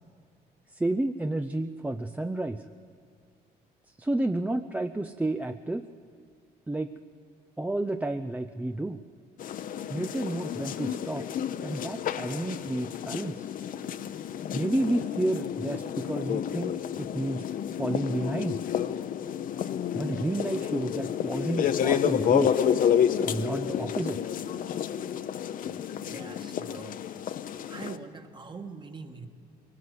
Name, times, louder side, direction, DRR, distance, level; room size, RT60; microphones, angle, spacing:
voice 1, 0.7-2.6 4.0-5.8 6.7-6.9 7.6-9.0 9.9-11.3 11.6-13.5 14.5-17.4 17.8-18.6 19.9-22.6 23.2-24.2, right 1 dB, 10° right, 8 dB, 0.5 m, -31 dB
sound 1, 9.4-28.0, left 9 dB, 55° left, 0.8 m, -30 dB
voice 2, 26.1-26.9 27.7-29.3, right 4 dB, 25° right, 6 dB, 1.6 m, -42 dB
22.5 x 18.5 x 8.0 m, 2.2 s
cardioid pair, 110°, 17 cm